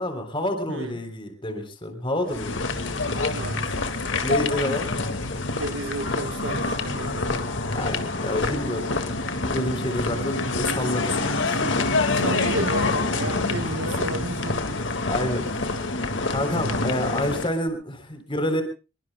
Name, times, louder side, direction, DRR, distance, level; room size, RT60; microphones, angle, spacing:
voice 1, 0.0-2.6 4.2-4.9 7.7-11.9 14.8-15.9 16.3-18.6, left 1 dB, 25° left, 3.5 m, -29 dB
sound 1, 2.3-17.5, left 3 dB, 70° left, 1.9 m, -26 dB
voice 2, 3.3-4.0 5.5-7.4 12.1-14.7, right 2 dB, 80° right, 1.3 m, -32 dB
26.0 x 22.0 x 2.2 m
head